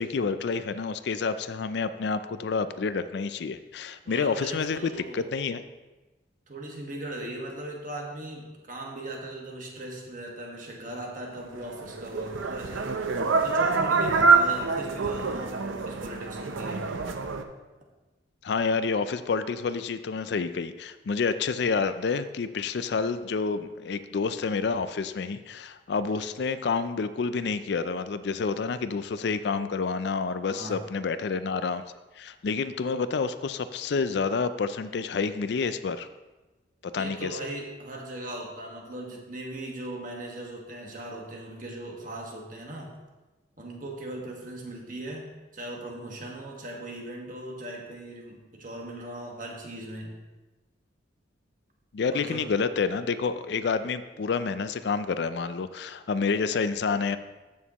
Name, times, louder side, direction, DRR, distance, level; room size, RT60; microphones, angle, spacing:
voice 1, 0.0-5.6 18.4-31.8 32.2-36.1 36.8-37.4 51.9-57.2, left 5 dB, 60° left, 12 dB, 0.4 m, -29 dB
voice 2, 4.0-5.3 6.5-13.0 13.4-16.9 30.5-30.8 37.0-42.9 43.6-50.1 52.1-52.4, right 1 dB, 45° right, 0 dB, 1.5 m, -39 dB
sound 1, 11.8-17.4, right 4 dB, 90° right, 0.7 m, -25 dB
14.0 x 6.4 x 3.0 m, 1.2 s
head